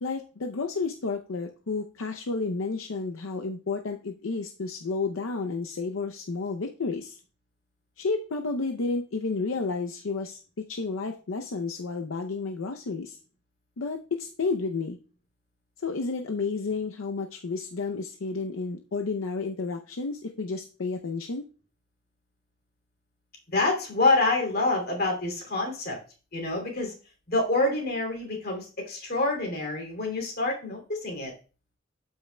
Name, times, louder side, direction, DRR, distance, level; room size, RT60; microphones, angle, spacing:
voice 1, 0.0-7.2 8.0-10.4 10.7-13.2 13.8-15.0 15.8-21.4, left 4 dB, 85° left, 4 dB, 0.6 m, -31 dB
voice 2, 23.5-26.0 26.3-26.9 27.3-31.3, left 2 dB, 50° left, 1 dB, 2.6 m, -27 dB
12.0 x 5.6 x 2.2 m, 0.35 s
head